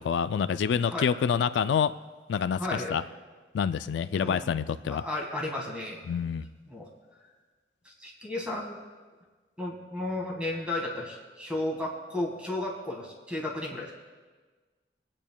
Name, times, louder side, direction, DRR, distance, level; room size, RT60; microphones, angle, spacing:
voice 1, 0.0-1.9 2.3-3.0 3.5-5.0 6.1-6.4, left 7 dB, 80° left, 12 dB, 0.3 m, -27 dB
voice 2, 2.6-2.9 4.1-4.6 4.9-6.0 6.7-6.9 7.9-8.8 9.6-13.9, left 1 dB, 5° right, -2 dB, 1.8 m, -33 dB
25.5 x 8.8 x 2.3 m, 1.4 s
head